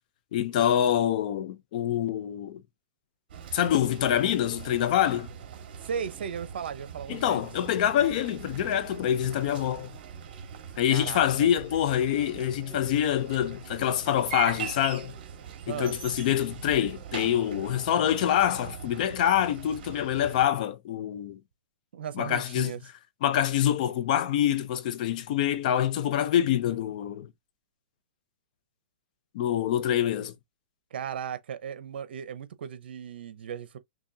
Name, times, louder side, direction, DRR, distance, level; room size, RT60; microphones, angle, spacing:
voice 1, 0.3-2.6 3.5-5.3 7.1-9.9 10.8-15.1 15.7-21.4 22.2-22.7 23.2-27.3 29.3-30.3, left 10 dB, 45° left, 0.8 m, -26 dB
sound 1, 3.3-20.5, right 8 dB, 50° right, 1.9 m, -42 dB
voice 2, 5.8-7.5 10.9-11.5 15.7-16.0 21.9-22.8 30.9-33.8, right 8 dB, 70° right, 0.9 m, -36 dB
6.0 x 2.4 x 2.8 m
hypercardioid pair, 155°, 6 cm